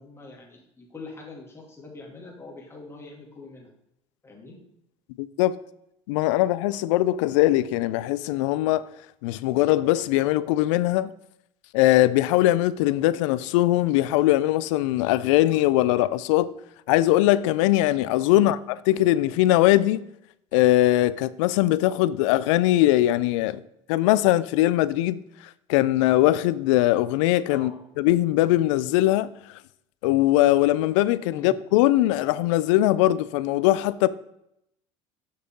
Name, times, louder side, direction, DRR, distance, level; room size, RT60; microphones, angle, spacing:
voice 1, 0.0-3.7 4.2-4.6 27.5-27.8 31.3-31.5, left 3 dB, 15° left, 2.7 m, -43 dB
voice 2, 5.2-5.6 6.1-8.9 9.2-11.1 11.7-16.5 16.9-20.0 20.5-23.6 23.9-25.2 25.7-27.7 28.0-29.3 30.0-34.1, left 15 dB, 75° left, 0.4 m, -21 dB
7.2 x 6.5 x 3.8 m
hypercardioid pair, 75°, 16 cm